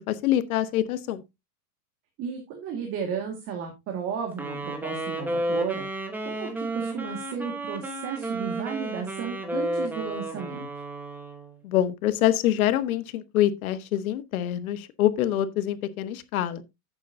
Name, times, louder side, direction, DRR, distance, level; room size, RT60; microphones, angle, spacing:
voice 1, 0.1-1.2 11.6-16.6, left 12 dB, 65° left, 1.2 m, -25 dB
voice 2, 2.2-10.7, right 6 dB, 30° right, 1.9 m, -34 dB
Wind instrument woodwind instrument, 4.3-11.6, right 1 dB, 5° right, 1.1 m, -32 dB
11.0 x 8.4 x 2.7 m
supercardioid pair, 165°, 46 cm